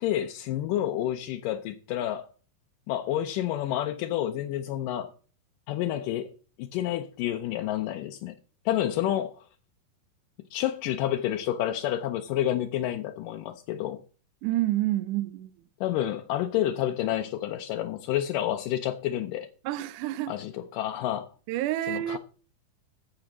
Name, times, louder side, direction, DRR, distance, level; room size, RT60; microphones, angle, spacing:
voice 1, 0.0-2.3 2.9-5.1 5.7-6.3 6.6-8.4 8.7-9.5 10.5-14.0 15.8-19.5 20.3-21.3 21.9-22.2, left 12 dB, 75° left, 2.0 m, -29 dB
voice 2, 14.4-15.5 19.6-20.3 21.5-22.2, right 14 dB, 90° right, 1.7 m, -28 dB
15.5 x 5.2 x 5.9 m
omnidirectional pair, 4.4 m